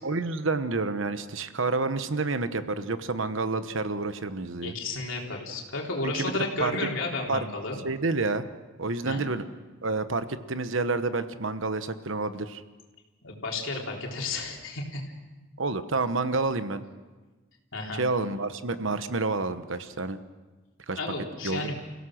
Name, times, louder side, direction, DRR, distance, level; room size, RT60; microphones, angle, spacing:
voice 1, 0.0-4.7 6.0-6.7 7.3-7.5 7.8-8.4 8.8-9.4 9.8-12.6 15.6-16.8 17.9-20.2 20.9-21.0 21.4-21.7, right 3 dB, 70° right, 11 dB, 1.1 m, -29 dB
voice 2, 4.6-7.8 9.1-9.2 13.2-15.1 17.7-18.0 21.0-21.7, left 2 dB, 70° left, 0 dB, 3.7 m, -32 dB
29.5 x 16.5 x 6.4 m, 1.2 s
head